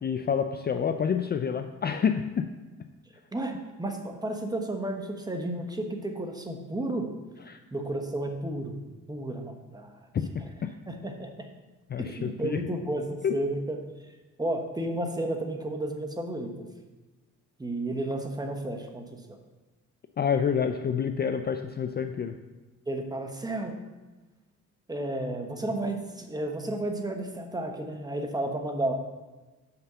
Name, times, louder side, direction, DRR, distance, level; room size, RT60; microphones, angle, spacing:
voice 1, 0.0-2.5 7.5-7.6 10.3-10.7 11.9-12.6 13.2-13.3 20.2-22.4, left 7 dB, 35° left, 7 dB, 0.4 m, -28 dB
voice 2, 3.8-7.1 7.7-8.8 9.1-10.0 10.4-10.5 10.9-11.3 12.0-13.8 14.4-16.5 17.6-19.0 22.9-23.7 24.9-28.9, right 1 dB, 15° right, 4 dB, 1.2 m, -32 dB
5.9 x 5.3 x 6.8 m, 1.2 s
cardioid pair, 90°, 30 cm